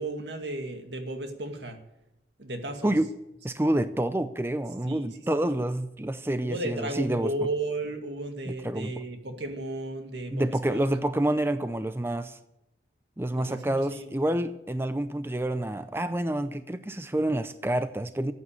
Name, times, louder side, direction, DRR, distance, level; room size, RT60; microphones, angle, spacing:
voice 1, 0.0-1.8 2.4-2.9 4.9-5.1 5.4-5.6 6.4-10.9 13.3-14.1, right 2 dB, 80° right, 2.1 m, -34 dB
voice 2, 3.4-7.3 8.5-8.9 10.3-12.4 13.2-18.3, right 1 dB, 15° right, 0.5 m, -28 dB
14.0 x 8.5 x 8.8 m
head